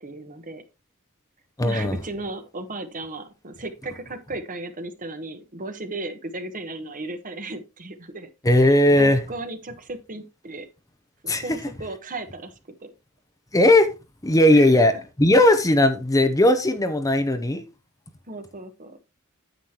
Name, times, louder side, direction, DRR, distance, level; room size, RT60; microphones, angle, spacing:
voice 1, 0.0-0.6 1.6-8.3 8.9-10.7 11.2-12.5 12.8-12.9 14.5-14.8 18.3-19.0, right 2 dB, 40° right, 1.2 m, -35 dB
voice 2, 1.6-2.0 8.4-9.2 11.3-11.6 13.5-13.9 14.2-17.6, left 1 dB, 15° left, 0.8 m, -18 dB
9.2 x 8.2 x 2.9 m
head